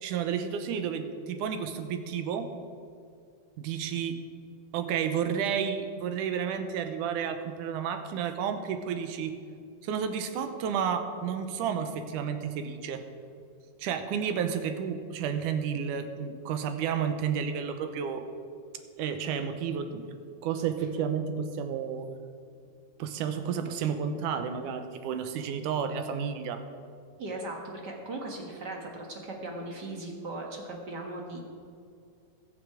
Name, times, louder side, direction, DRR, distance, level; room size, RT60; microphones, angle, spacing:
voice 1, 0.0-2.5 3.6-4.2 4.7-9.4 9.8-13.0 13.8-18.3 19.0-20.1 20.4-22.1 23.0-26.6, right 7 dB, 75° right, 7 dB, 2.3 m, -31 dB
voice 2, 27.2-31.4, right 2 dB, 45° right, 0 dB, 1.4 m, -38 dB
21.5 x 7.2 x 4.9 m, 2.4 s
omnidirectional pair, 3.8 m